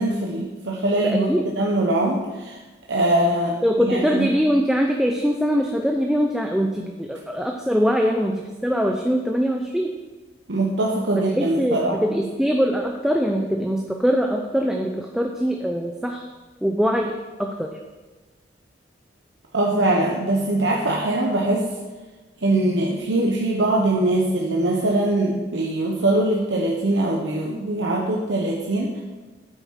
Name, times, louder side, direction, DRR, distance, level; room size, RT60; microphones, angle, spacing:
voice 1, 0.0-1.3 1.6-2.6 2.9-3.6 3.9-4.3 10.5-12.0 19.5-21.6 22.4-29.0, right 1 dB, 80° right, -2 dB, 1.0 m, -22 dB
voice 2, 1.0-1.4 3.6-9.9 11.4-16.2 16.6-17.7, equal, 5° right, 2 dB, 0.5 m, -22 dB
9.0 x 8.3 x 4.7 m, 1.3 s
head